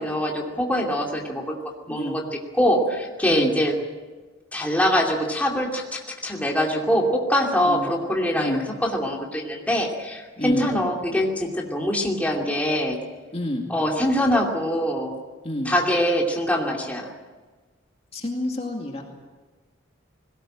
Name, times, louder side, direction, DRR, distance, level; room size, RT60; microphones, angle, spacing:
voice 1, 0.0-1.5 1.9-2.2 2.6-3.7 4.5-13.0 13.7-15.2 15.6-17.1, equal, 5° left, -1 dB, 2.6 m, -23 dB
voice 2, 8.3-8.6 10.4-10.7 13.3-13.7 15.4-15.7 18.1-19.0, left 1 dB, 30° left, 1 dB, 2.3 m, -28 dB
21.0 x 18.0 x 9.0 m, 1.3 s
head